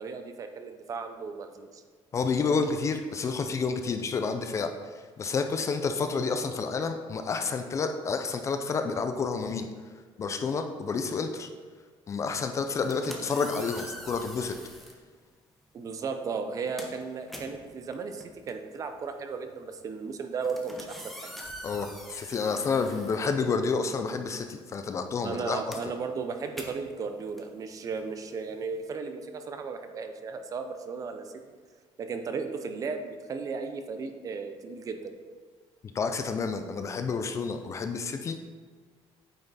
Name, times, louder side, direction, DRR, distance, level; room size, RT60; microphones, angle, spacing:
voice 1, 0.0-1.8 15.7-21.3 25.2-31.5 32.0-35.2, right 5 dB, 30° right, 7 dB, 0.5 m, -35 dB
voice 2, 2.1-4.7 5.2-9.7 10.2-11.5 12.1-14.6 21.6-25.6 35.9-38.5, left 4 dB, 30° left, 7 dB, 0.4 m, -29 dB
sound 1, 12.6-15.0 15.9-16.1 16.4-23.9 24.2-28.9, equal, ahead, 0.8 m, -45 dB
8.9 x 5.7 x 4.0 m, 1.5 s
cardioid pair, 180°, 11 cm